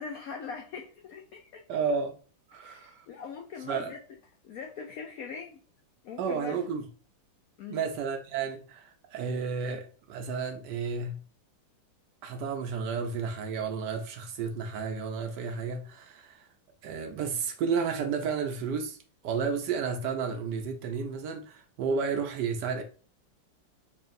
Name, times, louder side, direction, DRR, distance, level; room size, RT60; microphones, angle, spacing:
voice 1, 0.0-1.6 2.6-4.0 4.4-5.6 6.0-6.6 7.6-7.9, left 5 dB, 80° left, 0.8 m, -41 dB
voice 2, 1.7-2.1 2.5-3.1 3.7-3.9 6.2-6.8 7.7-11.2 12.2-16.5 16.8-19.0 19.2-22.8, right 5 dB, 70° right, 1.1 m, -32 dB
4.4 x 3.3 x 2.5 m
omnidirectional pair, 2.1 m